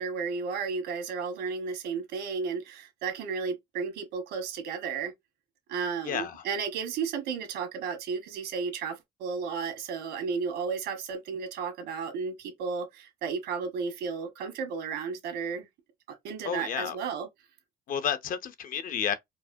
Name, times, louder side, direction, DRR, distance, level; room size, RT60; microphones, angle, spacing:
voice 1, 0.0-5.1 5.7-15.7 16.2-17.3, right 5 dB, 80° right, 1.5 m, -33 dB
voice 2, 6.0-6.4 16.4-17.0 17.9-19.1, left 8 dB, 55° left, 0.7 m, -31 dB
4.6 x 2.1 x 2.6 m
cardioid pair, 110°, 17 cm